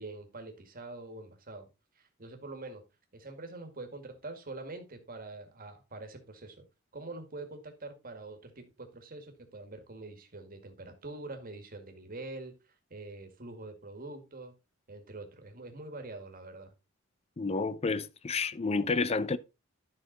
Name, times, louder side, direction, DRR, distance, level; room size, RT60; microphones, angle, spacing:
voice 1, 0.0-1.7 2.0-2.8 3.1-6.6 6.9-12.5 12.9-14.5 14.9-16.7, right 2 dB, 45° right, 1.9 m, -45 dB
voice 2, 17.4-19.4, left 4 dB, 30° left, 0.5 m, -30 dB
11.0 x 5.8 x 4.0 m
head